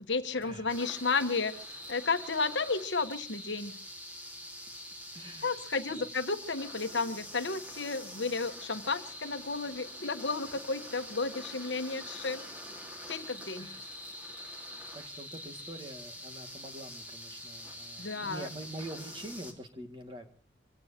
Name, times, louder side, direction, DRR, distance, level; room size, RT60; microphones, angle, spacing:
voice 1, 0.1-1.6 1.9-3.8 5.4-12.4 13.1-13.7 18.0-18.5, left 4 dB, 70° left, 9 dB, 1.4 m, -32 dB
sound 1, 0.7-19.5, equal, 10° right, 2.7 m, -45 dB
voice 2, 5.1-5.5 13.6-13.8 14.9-20.3, right 1 dB, 25° right, 5 dB, 2.2 m, -45 dB
26.0 x 17.5 x 2.9 m, 0.36 s
head